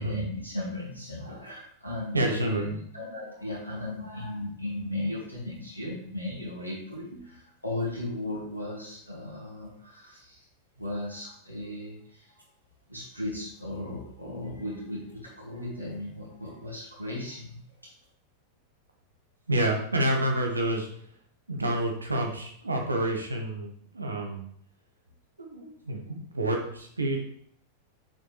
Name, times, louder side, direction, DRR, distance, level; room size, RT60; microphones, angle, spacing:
voice 1, 0.0-10.4 10.8-12.3 12.9-17.9, left 1 dB, 90° left, -5 dB, 2.3 m, -36 dB
voice 2, 2.1-2.8 7.1-7.2 19.5-20.9 21.5-24.4 25.4-27.2, right 1 dB, 80° right, 2 dB, 1.2 m, -28 dB
7.4 x 5.3 x 3.3 m, 0.63 s
figure-of-eight pair, 90°, 0 cm